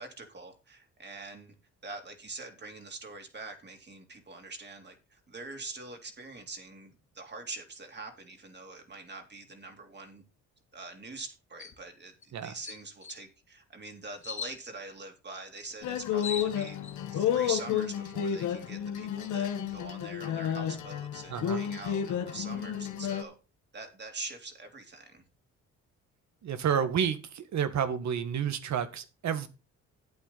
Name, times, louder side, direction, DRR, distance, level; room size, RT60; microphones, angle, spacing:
voice 1, 0.0-1.6 1.8-10.2 10.7-16.8 17.1-23.3 23.7-25.2, right 3 dB, 35° right, 3.4 m, -44 dB
sound 1, 11.6-11.8 12.2-12.3 12.6-13.2 14.2-14.6 15.7-15.8 16.0-17.0, left 6 dB, 40° left, 2.0 m, -39 dB
sound 2, 15.8-23.2, left 9 dB, 75° left, 1.5 m, -31 dB
voice 2, 21.3-21.7 26.4-29.5, right 8 dB, 65° right, 1.7 m, -30 dB
11.5 x 8.7 x 4.2 m
cardioid pair, 90°, 30 cm